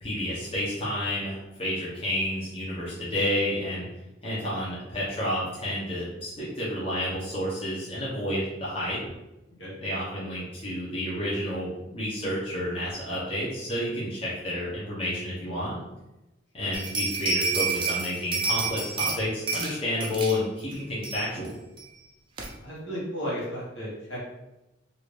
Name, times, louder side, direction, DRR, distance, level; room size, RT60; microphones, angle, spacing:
voice 1, 0.0-3.9 4.2-9.0 9.8-15.8 16.5-21.5, left 1 dB, 30° left, -8 dB, 1.0 m, -30 dB
sound 1, 16.7-19.2 19.5-19.7 20.0-20.4 20.7-20.8 21.0-21.5 21.8-21.9 22.4-22.5, right 4 dB, 25° right, 0.5 m, -29 dB
voice 2, 22.6-24.2, equal, 70° left, -7 dB, 1.3 m, -34 dB
2.9 x 2.5 x 3.2 m, 0.99 s
head